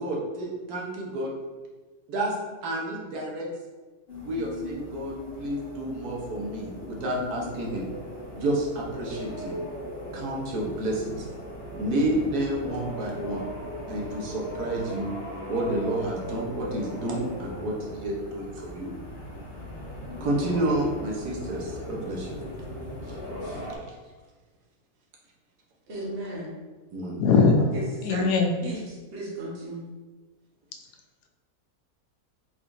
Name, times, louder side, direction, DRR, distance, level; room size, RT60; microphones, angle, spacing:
voice 1, 0.0-1.3 2.1-2.4 2.6-3.5 4.2-7.8 8.3-9.6 10.1-11.2 11.7-13.5 13.9-15.1 15.5-18.9 20.2-22.3 23.1-23.2 23.4-23.6 26.9-27.2, right 1 dB, 70° right, -2 dB, 1.4 m, -30 dB
sound 1, 4.1-23.8, left 1 dB, 40° left, 1.6 m, -38 dB
voice 2, 25.9-26.5 27.7-28.3 28.6-29.8, right 1 dB, 40° right, -6 dB, 1.2 m, -35 dB
voice 3, 27.2-27.6 28.0-28.5, left 5 dB, 85° left, 3 dB, 1.2 m, -19 dB
4.5 x 3.9 x 2.6 m, 1.3 s
omnidirectional pair, 1.7 m